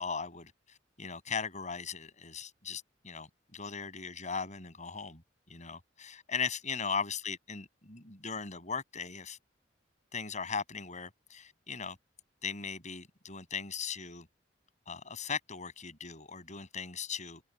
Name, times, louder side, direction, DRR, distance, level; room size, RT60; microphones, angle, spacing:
voice 1, 0.0-5.2 5.5-9.4 10.1-12.0 12.4-14.3 14.9-17.4, left 5 dB, 40° left, 7.8 m, -38 dB
head